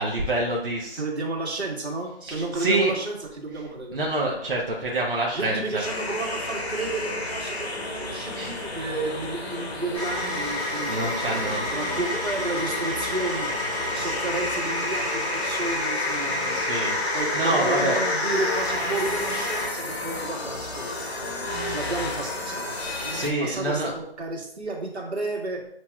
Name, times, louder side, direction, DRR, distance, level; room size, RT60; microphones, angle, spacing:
voice 1, 0.0-1.0 2.3-2.9 3.9-5.8 8.3-8.6 10.4-12.0 14.0-14.1 16.5-18.0 22.8-23.9, right 2 dB, 55° right, -3 dB, 0.9 m, -27 dB
voice 2, 1.0-4.0 5.3-16.6 17.1-22.6 23.0-25.7, right 2 dB, 85° right, -2 dB, 1.6 m, -32 dB
sound 1, 5.8-23.3, left 2 dB, 70° left, 1.2 m, -31 dB
sound 2, 9.9-19.7, left 1 dB, 35° left, 1.7 m, -30 dB
7.4 x 2.9 x 2.3 m, 0.71 s
figure-of-eight pair, 170°, 32 cm